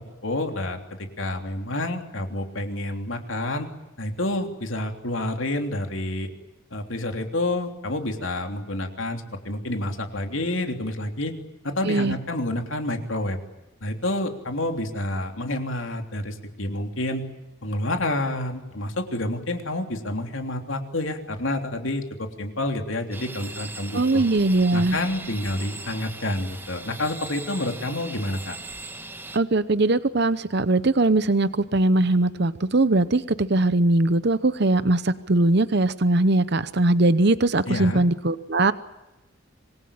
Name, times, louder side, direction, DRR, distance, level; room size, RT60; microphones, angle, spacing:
voice 1, 0.2-3.7 4.0-6.3 6.7-11.3 11.6-13.4 13.8-17.2 17.6-24.2 24.7-28.6 37.7-38.0, left 1 dB, 70° left, 5 dB, 3.3 m, -29 dB
voice 2, 11.8-12.2 23.9-25.0 29.3-38.7, right 2 dB, 50° right, 14 dB, 0.8 m, -21 dB
sound 1, 23.1-29.4, right 2 dB, 10° right, 1.3 m, -39 dB
26.5 x 21.0 x 8.8 m, 1.0 s
head